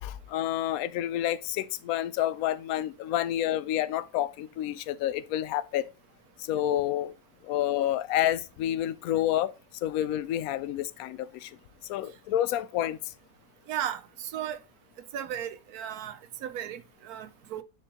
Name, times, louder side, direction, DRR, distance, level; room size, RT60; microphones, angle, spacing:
voice 1, 0.0-5.9 6.4-7.1 7.4-9.5 9.8-11.5 11.9-13.1, left 12 dB, 75° left, 1.0 m, -29 dB
voice 2, 13.7-14.6 15.1-17.6, right 10 dB, 85° right, 1.2 m, -35 dB
9.7 x 4.5 x 2.9 m
omnidirectional pair, 1.5 m